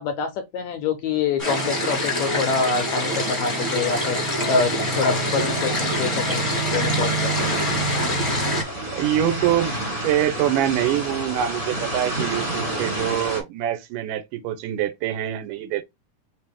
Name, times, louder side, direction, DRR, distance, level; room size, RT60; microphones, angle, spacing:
voice 1, 0.0-6.4 6.7-7.6, left 5 dB, 75° left, 1.7 m, -26 dB
sound 1, 1.4-8.6, equal, 15° left, 0.9 m, -24 dB
sound 2, 7.3-13.4, right 1 dB, 30° right, 1.0 m, -29 dB
voice 2, 8.9-9.7 10.0-15.8, right 11 dB, 90° right, 2.2 m, -24 dB
5.6 x 2.7 x 3.4 m
omnidirectional pair, 3.8 m